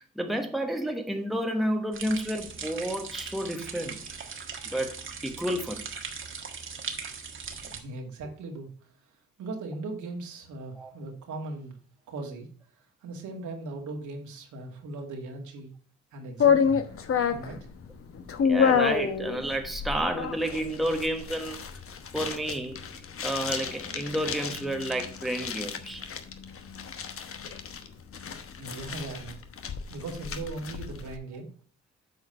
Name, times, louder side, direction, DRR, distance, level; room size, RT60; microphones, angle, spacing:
voice 1, 0.0-4.2 4.7-5.0 5.2-5.8 10.7-10.9 18.4-21.6 22.1-22.8 23.2-26.0, right 1 dB, ahead, 1.1 m, -30 dB
sound 1, 1.9-7.8, right 5 dB, 40° right, 1.5 m, -39 dB
voice 2, 7.6-8.7 9.4-11.7 12.1-12.5 13.0-15.7 16.1-16.8 17.3-17.6 28.6-29.4 29.9-31.5, right 2 dB, 75° right, 2.2 m, -38 dB
sound 2, 16.4-31.1, left 7 dB, 45° left, 1.0 m, -29 dB
8.0 x 4.8 x 5.5 m
cardioid pair, 90°, 30 cm